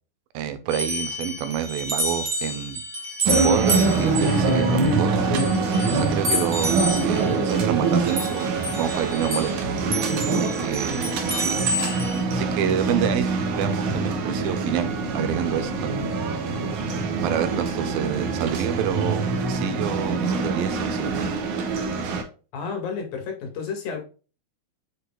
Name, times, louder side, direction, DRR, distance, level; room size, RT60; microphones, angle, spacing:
voice 1, 0.3-2.8 3.3-5.2 5.9-8.5 8.8-9.7 10.3-11.7 12.3-16.1 17.2-21.3, right 9 dB, 85° right, 2.7 m, -28 dB
sound 1, 0.7-9.6 9.9-12.2, equal, 40° right, 1.4 m, -29 dB
sound 2, 3.3-22.2, right 3 dB, 65° right, 2.4 m, -24 dB
voice 2, 22.5-24.0, left 5 dB, 80° left, 3.7 m, -31 dB
8.0 x 5.5 x 2.3 m
omnidirectional pair, 4.1 m